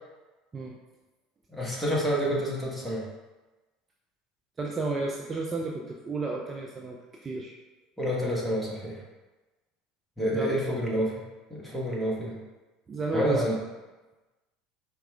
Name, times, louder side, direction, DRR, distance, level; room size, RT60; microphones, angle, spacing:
voice 1, 1.5-3.1 8.0-9.0 10.2-12.4 13.1-13.5, equal, 5° left, -5 dB, 1.3 m, -28 dB
voice 2, 4.6-7.0 7.2-7.5 10.3-10.6 12.9-13.5, right 3 dB, 25° right, -1 dB, 0.5 m, -32 dB
4.7 x 2.3 x 3.3 m, 1.1 s
hypercardioid pair, 70°, 0 cm